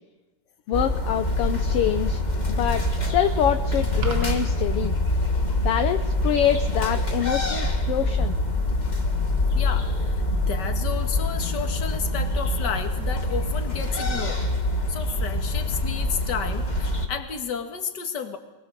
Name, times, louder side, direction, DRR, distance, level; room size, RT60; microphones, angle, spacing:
voice 1, 0.7-2.2 2.5-4.9 5.6-8.4, left 9 dB, 70° left, 7 dB, 1.5 m, -25 dB
sound 1, 0.7-17.1, left 2 dB, 25° left, 1.0 m, -25 dB
sound 2, 4.0-4.5, right 5 dB, 65° right, 0.7 m, -32 dB
voice 2, 9.6-14.5 14.9-18.4, left 6 dB, 40° left, 5 dB, 2.0 m, -32 dB
23.0 x 20.5 x 6.7 m, 1.2 s
omnidirectional pair, 3.5 m